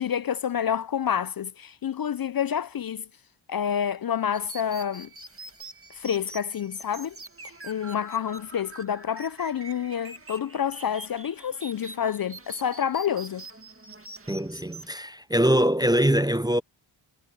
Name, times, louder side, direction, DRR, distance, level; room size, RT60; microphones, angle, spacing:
voice 1, 0.0-3.0 3.5-5.1 6.0-7.2 7.6-13.4, left 8 dB, 50° left, 0.5 m, -28 dB
sound 1, 4.3-14.9, right 3 dB, 25° right, 2.0 m, -45 dB
voice 2, 14.3-16.6, right 1 dB, 10° right, 0.6 m, -23 dB
cardioid pair, 55°, 48 cm